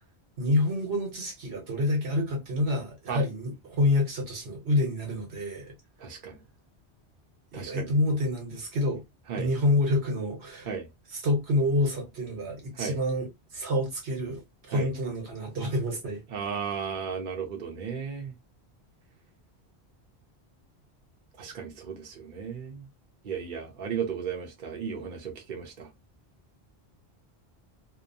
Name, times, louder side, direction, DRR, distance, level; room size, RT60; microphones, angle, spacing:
voice 1, 0.4-5.7 7.5-9.0 9.4-10.7 11.1-13.3 13.5-16.2, left 1 dB, 80° right, 1.3 m, -27 dB
voice 2, 6.0-6.4 7.5-7.9 9.3-9.5 10.6-10.9 12.8-13.0 14.7-14.9 16.3-18.3 21.4-22.9 23.2-25.9, right 7 dB, 55° right, 0.8 m, -35 dB
2.7 x 2.0 x 2.6 m
omnidirectional pair, 1.1 m